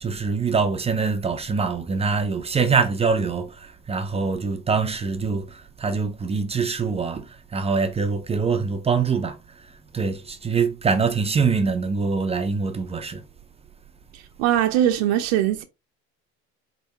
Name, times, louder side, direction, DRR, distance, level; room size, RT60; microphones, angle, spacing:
voice 1, 0.0-7.3 7.5-9.4 9.9-13.2, right 5 dB, 20° right, 0.5 m, -24 dB
voice 2, 14.1-15.6, right 11 dB, 85° right, 0.6 m, -21 dB
3.9 x 3.3 x 2.8 m
supercardioid pair, 105°, 31 cm